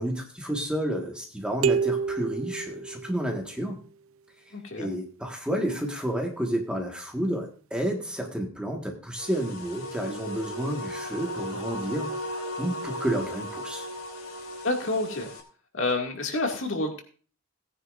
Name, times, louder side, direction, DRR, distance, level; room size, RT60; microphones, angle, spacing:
voice 1, 0.0-3.8 4.8-12.1 12.6-13.9, right 1 dB, 5° right, 1 dB, 1.6 m, -30 dB
sound 1, 1.6-3.5, right 6 dB, 75° right, 0.5 m, -28 dB
voice 2, 4.5-4.9 14.6-15.3 15.7-17.0, left 2 dB, 65° left, 2 dB, 2.2 m, -28 dB
sound 2, 9.2-15.4, equal, 80° left, 3.1 m, -36 dB
18.0 x 9.8 x 2.6 m, 0.40 s
head